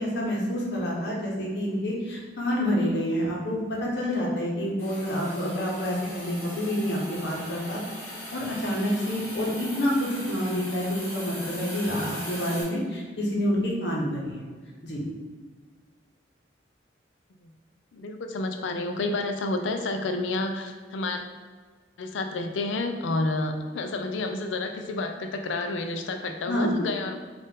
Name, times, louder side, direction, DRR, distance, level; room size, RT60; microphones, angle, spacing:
voice 1, 0.0-7.8 8.1-14.4 14.8-15.0 26.5-26.7, equal, 65° left, -3 dB, 1.0 m, -28 dB
Hiss, 4.8-12.6, equal, 10° left, 1.1 m, -39 dB
voice 2, 17.9-21.2 22.0-27.2, left 2 dB, 80° left, 5 dB, 0.4 m, -30 dB
4.2 x 2.5 x 3.6 m, 1.5 s
head